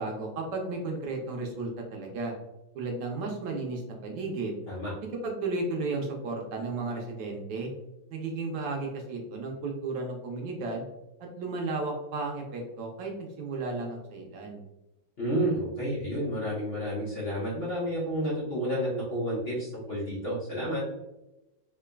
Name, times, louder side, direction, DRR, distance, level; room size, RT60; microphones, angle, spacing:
voice 1, 0.0-2.3 2.7-4.6 5.2-7.7 8.1-10.9 11.4-14.6, right 3 dB, 75° right, 1 dB, 1.2 m, -34 dB
voice 2, 15.2-20.8, equal, 45° left, -8 dB, 0.9 m, -30 dB
3.8 x 3.3 x 2.2 m, 0.97 s
omnidirectional pair, 2.1 m